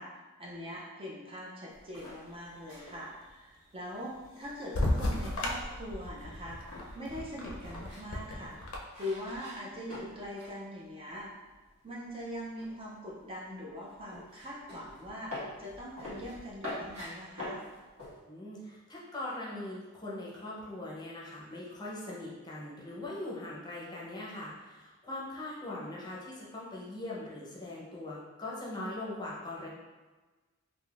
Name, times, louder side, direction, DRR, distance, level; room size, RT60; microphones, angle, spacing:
voice 1, 0.0-8.6 9.0-11.3 11.8-17.6, equal, 25° right, -4 dB, 0.4 m, -42 dB
sound 1, 1.7-10.6 10.8-11.7 12.0-18.2, left 1 dB, 85° right, 1.3 m, -46 dB
sound 2, 4.7-8.8, left 1 dB, 75° left, 0.5 m, -34 dB
voice 2, 18.2-29.7, left 1 dB, 20° left, -6 dB, 0.6 m, -41 dB
3.4 x 2.5 x 2.3 m, 1.3 s
head